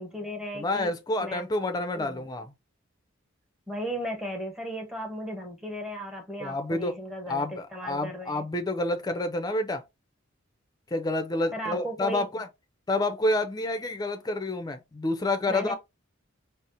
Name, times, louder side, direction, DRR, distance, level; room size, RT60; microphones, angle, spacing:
voice 1, 0.0-0.9 1.2-1.5 1.9-2.3 3.7-8.5 11.5-12.3 15.5-15.7, equal, 5° right, 0.8 m, -36 dB
voice 2, 0.5-2.5 6.4-7.0 7.3-9.8 10.9-12.5 12.9-15.7, left 2 dB, 20° left, 0.5 m, -28 dB
4.1 x 2.0 x 2.5 m
head